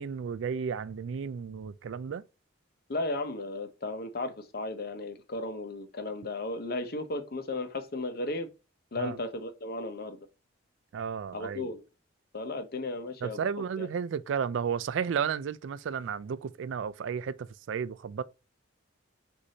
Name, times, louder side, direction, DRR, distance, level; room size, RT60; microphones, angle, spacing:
voice 1, 0.0-2.2 9.0-9.2 10.9-11.7 13.2-18.2, right 7 dB, 65° right, 0.3 m, -33 dB
voice 2, 2.9-8.5 8.9-10.3 11.3-11.8 12.3-13.4 13.8-13.9, left 2 dB, 50° left, 0.8 m, -35 dB
6.3 x 2.7 x 2.8 m
head